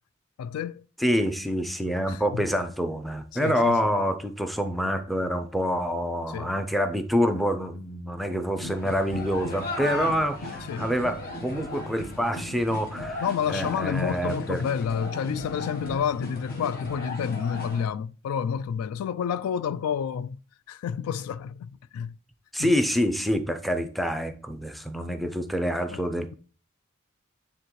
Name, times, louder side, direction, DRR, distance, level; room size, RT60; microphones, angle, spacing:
voice 1, 0.4-0.8 2.1-2.4 3.3-3.9 6.3-6.5 10.7-10.9 13.2-20.4 20.7-22.2 22.6-22.7 25.9-26.0, left 7 dB, 75° left, 0.3 m, -29 dB
voice 2, 1.0-13.2 13.5-14.6 22.5-26.3, equal, ahead, 0.5 m, -27 dB
sound 1, 8.5-17.8, left 1 dB, 45° left, 1.1 m, -36 dB
9.1 x 3.5 x 3.1 m
head